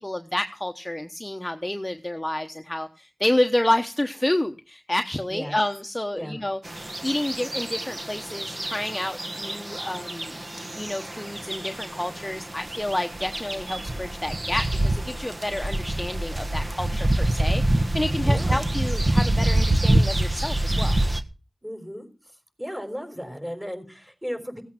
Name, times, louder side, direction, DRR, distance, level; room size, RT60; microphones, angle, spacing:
voice 1, 0.0-6.6 7.0-10.4 10.8-21.0, left 1 dB, 20° left, 6 dB, 1.0 m, -29 dB
sound 1, 6.6-21.2, right 1 dB, 40° right, 1.4 m, -26 dB
voice 2, 18.2-18.6 21.6-22.1 22.6-24.6, equal, 10° right, 5 dB, 5.3 m, -35 dB
17.0 x 8.3 x 5.9 m, 0.34 s
cardioid pair, 45°, 0 cm